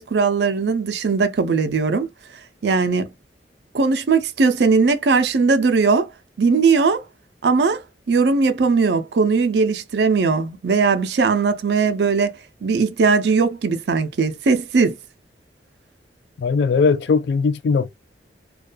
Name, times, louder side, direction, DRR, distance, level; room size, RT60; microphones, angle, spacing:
voice 1, 0.0-2.1 2.6-3.1 3.7-6.1 6.4-7.0 7.4-12.3 12.6-15.0, right 4 dB, 70° right, 0.5 m, -19 dB
voice 2, 16.4-17.9, left 5 dB, 75° left, 0.3 m, -19 dB
2.3 x 2.2 x 2.4 m
head